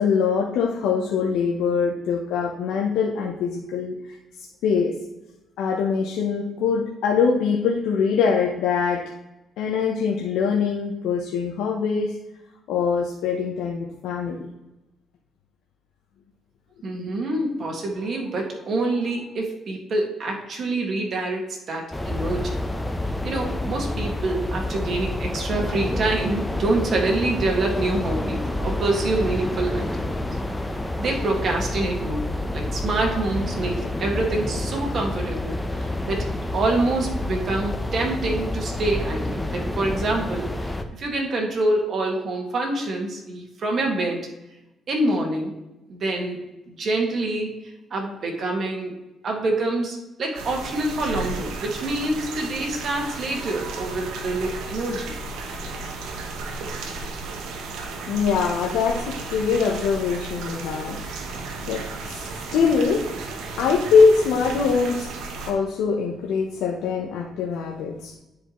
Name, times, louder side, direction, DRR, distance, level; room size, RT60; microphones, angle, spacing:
voice 1, 0.0-4.9 5.6-9.0 9.6-12.2 12.7-14.4 58.1-61.0 61.7-63.0 63.6-65.1 65.5-68.1, left 5 dB, 85° left, -1 dB, 0.8 m, -23 dB
voice 2, 16.8-22.6 23.2-30.3 31.0-36.3 36.5-44.3 44.9-45.5 45.9-46.4 46.7-48.9 49.2-55.2, right 2 dB, 55° right, 1 dB, 1.9 m, -26 dB
sound 1, 21.9-40.8, left 1 dB, 10° left, 0.7 m, -28 dB
sound 2, 50.3-65.5, right 3 dB, 90° right, 1.1 m, -34 dB
10.0 x 4.8 x 3.1 m, 0.96 s
cardioid pair, 90°, 0 cm